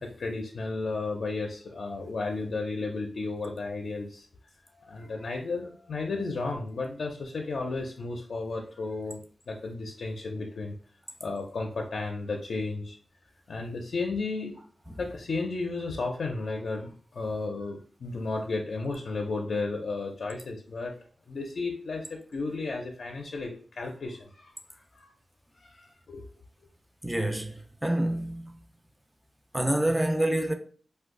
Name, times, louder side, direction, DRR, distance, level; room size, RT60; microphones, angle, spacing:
voice 1, 0.0-4.3 4.8-10.7 11.2-13.0 13.5-14.5 15.0-20.9 21.3-24.5 24.9-25.1 25.6-26.2, left 3 dB, 75° left, 0.4 m, -33 dB
voice 2, 27.0-28.5 29.5-30.5, right 1 dB, 5° right, 0.3 m, -27 dB
2.6 x 2.2 x 3.6 m
wide cardioid pair, 145°, 0 cm